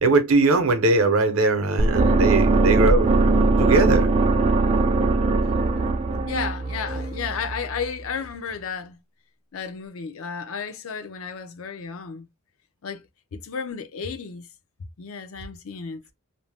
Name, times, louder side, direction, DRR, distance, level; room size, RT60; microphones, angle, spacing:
voice 1, 0.0-3.1 3.6-4.1, right 3 dB, 70° right, 0.7 m, -20 dB
sound 1, 1.8-7.8, right 3 dB, 30° right, 0.3 m, -20 dB
voice 2, 6.2-9.0 9.5-12.3 12.8-13.0 13.3-14.5 15.0-16.0, left 6 dB, 65° left, 0.5 m, -33 dB
2.6 x 2.0 x 3.3 m
head